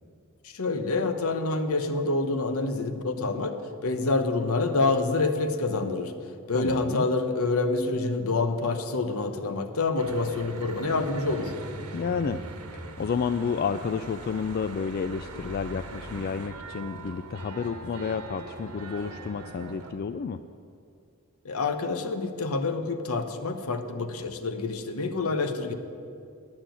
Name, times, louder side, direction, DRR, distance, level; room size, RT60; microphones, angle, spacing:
voice 1, 0.5-3.5 3.8-6.1 6.5-11.5 21.4-25.7, left 3 dB, 70° left, 8 dB, 0.9 m, -27 dB
voice 2, 6.5-7.1 11.9-12.4 12.7-20.4, left 6 dB, 45° left, 10 dB, 0.3 m, -31 dB
Church bell / Traffic noise roadway noise, 10.0-19.9, right 2 dB, 85° right, 1.2 m, -41 dB
9.7 x 9.1 x 8.9 m, 2.4 s
head